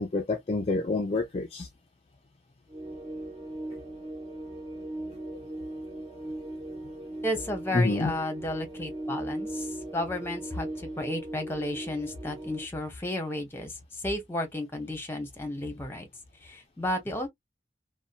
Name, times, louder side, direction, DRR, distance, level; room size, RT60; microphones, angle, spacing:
voice 1, 0.0-1.7 7.7-8.2, left 3 dB, 35° left, 0.4 m, -27 dB
sound 1, 2.7-12.7, right 1 dB, 30° right, 0.7 m, -38 dB
voice 2, 7.2-16.1 16.4-17.3, left 1 dB, 10° left, 0.8 m, -33 dB
2.7 x 2.1 x 2.4 m
head